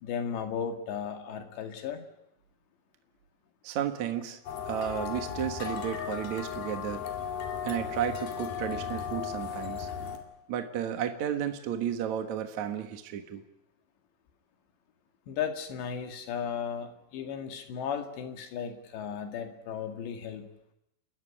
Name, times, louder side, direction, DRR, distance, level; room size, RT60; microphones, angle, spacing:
voice 1, 0.0-2.0 15.3-20.5, left 7 dB, 85° left, 6 dB, 4.3 m, -35 dB
voice 2, 3.6-4.4 4.7-7.1 7.6-9.9 10.5-13.4, right 9 dB, 55° right, 7 dB, 2.3 m, -33 dB
sound 1, 4.5-10.2, left 7 dB, 65° left, 3.9 m, -36 dB
29.5 x 14.0 x 10.0 m, 0.84 s
omnidirectional pair, 4.9 m